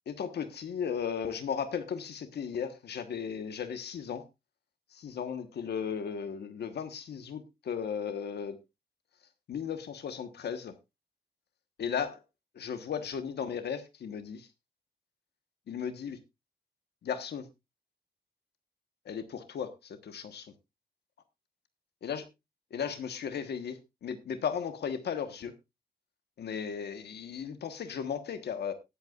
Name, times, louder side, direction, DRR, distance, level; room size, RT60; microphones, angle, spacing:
voice 1, 0.1-4.2 4.9-8.6 9.5-10.7 11.8-12.2 12.5-14.5 15.7-16.2 17.0-17.5 19.0-20.5 22.0-22.2 22.7-25.5 26.4-28.7, left 7 dB, 80° left, 1.3 m, -36 dB
18.5 x 8.1 x 2.4 m
wide cardioid pair, 155°, 17 cm